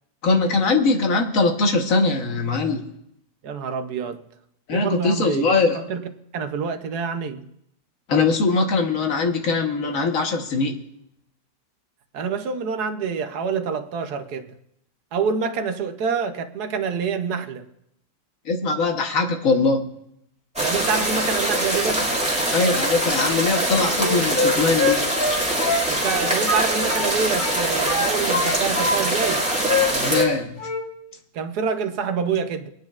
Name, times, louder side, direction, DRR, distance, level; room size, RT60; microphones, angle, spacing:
voice 1, 0.2-2.8 4.7-5.8 8.1-10.8 18.4-19.8 22.5-25.0 29.9-30.6, left 3 dB, 55° left, 1.4 m, -21 dB
voice 2, 3.4-4.2 4.7-6.0 6.3-7.4 12.1-14.5 15.1-17.7 20.6-22.1 25.9-29.5 31.3-32.7, right 6 dB, 75° right, 1.3 m, -27 dB
sound 1, 20.6-30.2, right 1 dB, 5° right, 2.0 m, -23 dB
Wind instrument woodwind instrument, 23.9-27.1 27.4-29.0 29.2-30.3 30.6-30.9, left 3 dB, 30° left, 1.8 m, -24 dB
24.0 x 9.4 x 2.4 m
omnidirectional pair, 1.8 m